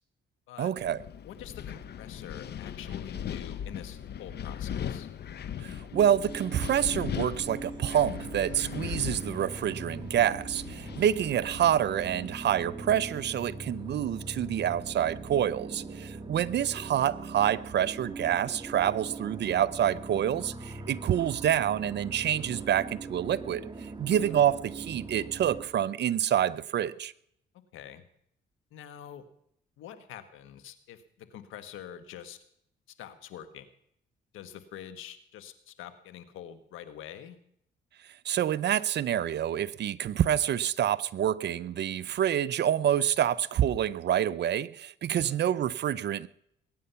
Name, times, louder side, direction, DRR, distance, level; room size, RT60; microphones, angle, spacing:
voice 1, 0.6-1.0 5.6-23.6 24.0-27.1 38.3-46.3, right 10 dB, 60° right, 0.7 m, -27 dB
Wind, 0.8-12.3, left 9 dB, 55° left, 0.8 m, -39 dB
voice 2, 1.2-5.1 23.9-24.4 27.7-28.0 28.7-29.2 29.8-32.4 33.0-33.7 34.3-37.4 45.2-45.4, left 10 dB, 85° left, 1.4 m, -46 dB
sound 1, 5.9-25.6, right 3 dB, 25° right, 1.8 m, -41 dB
21.5 x 9.6 x 5.7 m
cardioid pair, 90°, 20 cm